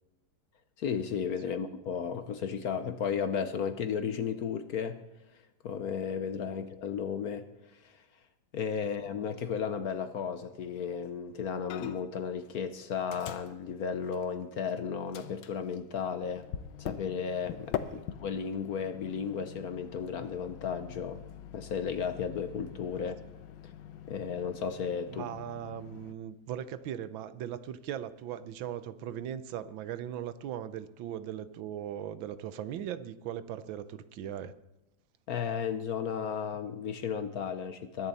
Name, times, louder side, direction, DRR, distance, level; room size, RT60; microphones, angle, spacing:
voice 1, 0.8-5.0 5.6-7.5 7.8-8.0 8.5-16.5 16.8-17.7 18.2-21.2 21.5-23.1 23.6-23.7 24.1-25.3 35.3-38.1, left 7 dB, 60° left, 10 dB, 1.1 m, -34 dB
Microwave oven, 11.7-12.2 12.5-14.7 15.1-26.1, left 10 dB, 85° left, 1.5 m, -44 dB
voice 2, 25.1-34.5, right 10 dB, 80° right, 13 dB, 1.5 m, -39 dB
21.0 x 10.5 x 4.1 m, 0.99 s
omnidirectional pair, 2.1 m